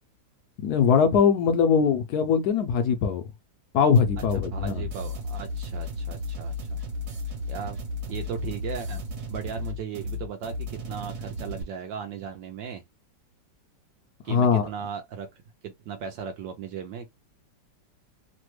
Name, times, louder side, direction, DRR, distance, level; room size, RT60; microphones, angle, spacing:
voice 1, 0.6-3.3 3.7-4.8 14.3-14.7, left 6 dB, 70° left, 0.9 m, -21 dB
sound 1, 4.0-11.6, left 2 dB, 55° right, 1.5 m, -34 dB
voice 2, 4.3-6.8 7.5-7.8 8.1-9.0 9.3-12.8 14.2-15.3 15.6-17.1, right 7 dB, 75° right, 1.2 m, -37 dB
3.3 x 2.1 x 3.0 m
omnidirectional pair, 2.1 m